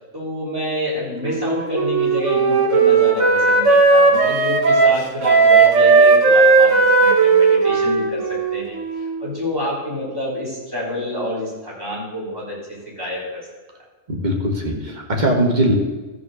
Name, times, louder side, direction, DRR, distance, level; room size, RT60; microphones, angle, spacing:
voice 1, 0.1-12.6 13.0-13.5, left 1 dB, 15° right, -6 dB, 3.9 m, -27 dB
Wind instrument woodwind instrument, 1.2-9.2, right 4 dB, 75° right, 1.6 m, -15 dB
voice 2, 14.1-15.7, right 1 dB, 35° right, 0 dB, 1.7 m, -20 dB
13.0 x 4.9 x 6.8 m, 1.2 s
omnidirectional pair, 1.3 m